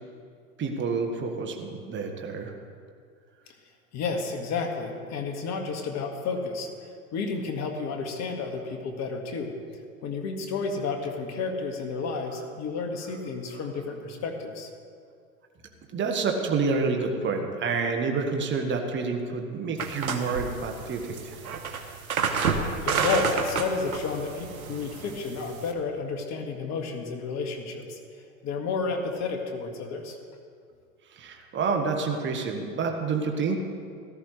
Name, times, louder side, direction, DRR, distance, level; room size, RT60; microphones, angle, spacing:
voice 1, 0.6-2.5 15.9-21.4 31.1-33.6, right 4 dB, 25° right, 3 dB, 1.7 m, -28 dB
voice 2, 3.9-6.7 7.1-9.5 10.0-14.7 22.8-28.0 28.4-30.2, left 4 dB, 40° left, 4 dB, 2.0 m, -31 dB
sound 1, 19.8-25.7, right 5 dB, 90° right, 1.3 m, -30 dB
17.5 x 13.5 x 3.3 m, 2.2 s
hypercardioid pair, 100°, 42 cm